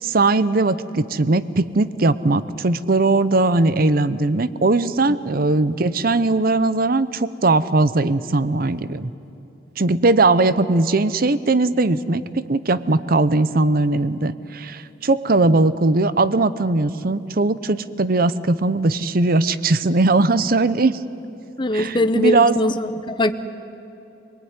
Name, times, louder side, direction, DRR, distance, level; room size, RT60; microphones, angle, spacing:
voice 1, 0.0-9.1 9.8-21.0 21.7-22.6, right 2 dB, 55° right, 15 dB, 0.8 m, -19 dB
voice 2, 21.6-23.3, left 1 dB, 25° left, 9 dB, 0.9 m, -21 dB
27.0 x 19.5 x 9.7 m, 3.0 s
head